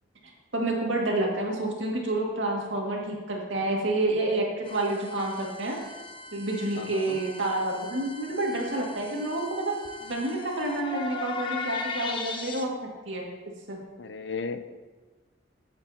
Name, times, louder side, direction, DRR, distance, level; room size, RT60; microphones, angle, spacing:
voice 1, 0.5-5.8 6.3-9.7 10.0-13.3 13.7-13.8, right 2 dB, 70° right, -2 dB, 2.2 m, -29 dB
sound 1, 4.7-12.7, left 3 dB, 25° left, 0.7 m, -39 dB
voice 2, 6.8-7.2 14.0-14.9, left 4 dB, 65° left, 10 dB, 0.6 m, -35 dB
15.5 x 8.2 x 2.9 m, 1.3 s
head